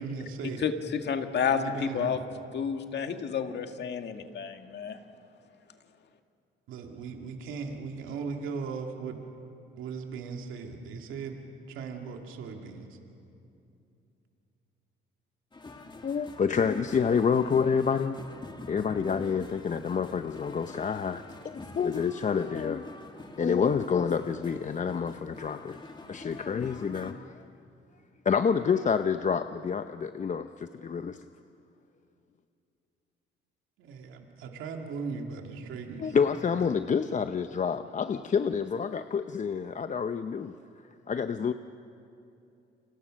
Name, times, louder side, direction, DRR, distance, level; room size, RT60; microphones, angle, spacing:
voice 1, 0.0-0.7 1.4-2.2 6.7-9.2 9.8-11.4 11.7-13.0 33.8-36.2 36.6-36.7, right 5 dB, 90° right, 2 dB, 2.4 m, -38 dB
voice 2, 0.6-2.2 2.5-5.0, left 7 dB, 60° left, 6 dB, 1.9 m, -30 dB
sound 1, 15.5-27.1, left 2 dB, 25° left, 2.3 m, -46 dB
voice 3, 16.0-22.9 23.4-25.8 26.1-27.4 28.2-31.2 36.0-40.6 41.1-41.5, left 6 dB, 40° left, 9 dB, 0.8 m, -28 dB
30.0 x 25.5 x 6.5 m, 2.7 s
cardioid pair, 90°, 20 cm